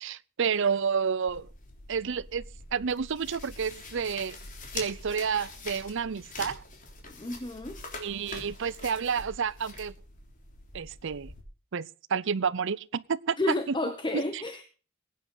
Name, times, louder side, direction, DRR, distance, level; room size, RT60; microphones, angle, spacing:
voice 1, 0.0-1.5 1.9-2.4 2.7-4.4 4.7-6.6 8.0-9.9 10.7-11.3 11.7-13.8 14.1-14.4, right 6 dB, 65° right, 0.6 m, -30 dB
sound 1, 1.3-11.4, left 3 dB, 40° left, 3.6 m, -44 dB
voice 2, 7.2-7.8 13.4-14.6, left 2 dB, 25° left, 1.1 m, -31 dB
21.5 x 9.4 x 4.0 m
head